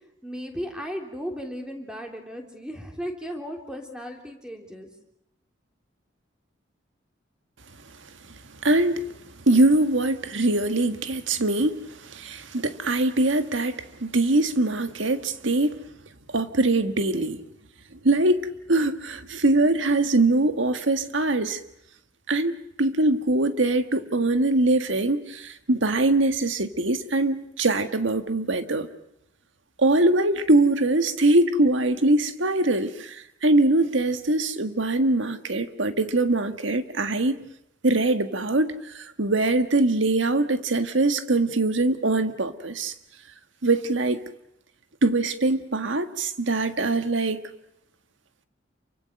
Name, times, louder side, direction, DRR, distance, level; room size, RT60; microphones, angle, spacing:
voice 1, 0.2-4.9, equal, 5° right, 3.3 m, -35 dB
voice 2, 8.6-9.0 9.5-15.8 16.3-17.4 18.0-18.4 18.7-21.6 22.3-28.9 29.8-37.4 37.8-42.9 43.6-44.2 45.0-47.4, right 2 dB, 80° right, 1.6 m, -22 dB
28.5 x 24.5 x 6.6 m
head